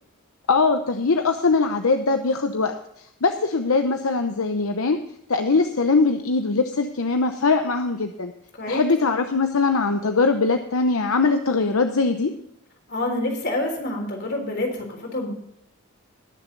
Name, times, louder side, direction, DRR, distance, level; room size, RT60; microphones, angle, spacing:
voice 1, 0.5-5.0 5.3-8.3 8.7-12.3, left 4 dB, 75° left, 7 dB, 0.8 m, -21 dB
voice 2, 12.9-15.3, left 1 dB, 50° left, 1 dB, 3.9 m, -27 dB
20.5 x 7.0 x 3.9 m, 0.75 s
head